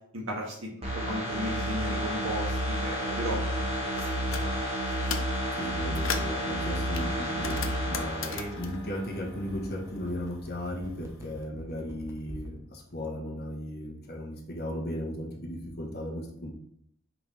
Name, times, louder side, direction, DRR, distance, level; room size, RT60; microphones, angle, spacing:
voice 1, 0.1-0.7 1.1-4.6 8.3-8.5, equal, 70° right, -2 dB, 1.9 m, -36 dB
sound 1, 0.8-9.5 9.8-9.9, equal, 30° right, 1.7 m, -31 dB
sound 2, 4.0-4.5 4.9-5.4 5.7-6.4 6.9-9.9 10.2-11.3, left 6 dB, 75° left, 0.7 m, -37 dB
voice 2, 5.5-16.5, left 1 dB, 50° left, 0 dB, 1.5 m, -36 dB
sound 3, 9.2-12.6 12.9-13.0, equal, 15° right, 0.9 m, -45 dB
5.8 x 5.1 x 3.5 m, 0.70 s
head